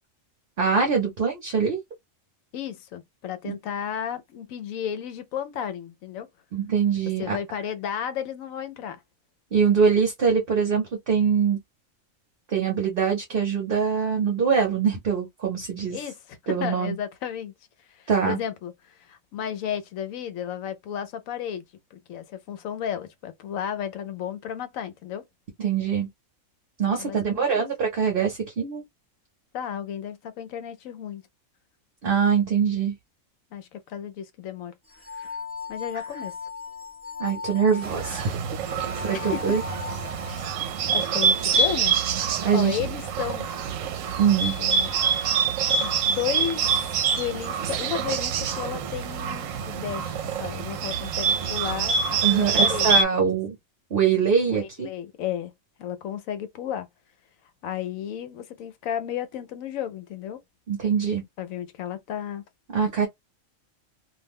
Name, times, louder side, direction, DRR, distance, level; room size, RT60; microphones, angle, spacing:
voice 1, 0.6-1.8 3.4-3.5 6.5-7.4 9.5-11.6 12.5-16.0 16.5-17.0 18.1-18.4 25.6-26.1 26.8-28.8 32.0-32.9 37.2-38.4 39.0-39.6 40.3-40.4 42.4-42.8 44.2-44.6 52.2-53.5 53.9-54.9 60.7-61.2 62.7-63.1, right 6 dB, 50° right, 0.9 m, -23 dB
voice 2, 2.5-6.3 7.2-9.0 15.9-17.5 17.9-21.6 21.9-25.2 27.0-27.7 29.5-31.2 33.5-34.7 35.1-35.4 35.7-36.4 39.1-39.5 40.9-42.0 42.5-43.5 44.0-44.2 44.6-44.9 45.8-46.9 47.2-50.1 50.4-53.3 54.5-55.5 55.8-56.9 57.6-60.4 61.4-62.4, left 9 dB, 85° left, 1.0 m, -33 dB
sound 1, 34.9-40.7, left 6 dB, 10° right, 0.3 m, -38 dB
Bird, 37.8-53.0, right 5 dB, 75° right, 0.9 m, -26 dB
2.5 x 2.1 x 3.4 m
omnidirectional pair, 1.4 m